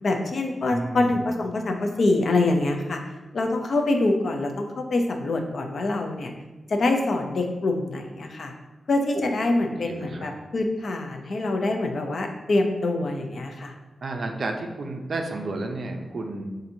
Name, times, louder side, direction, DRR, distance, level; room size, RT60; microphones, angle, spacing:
voice 1, 0.0-3.0 3.3-6.3 6.7-8.5 8.9-13.7, left 2 dB, 50° left, 3 dB, 0.4 m, -25 dB
voice 2, 0.7-1.3 9.1-9.2 9.6-10.3 14.0-16.5, right 2 dB, 50° right, 3 dB, 0.4 m, -32 dB
5.6 x 2.6 x 2.6 m, 1.2 s
wide cardioid pair, 175°, 0 cm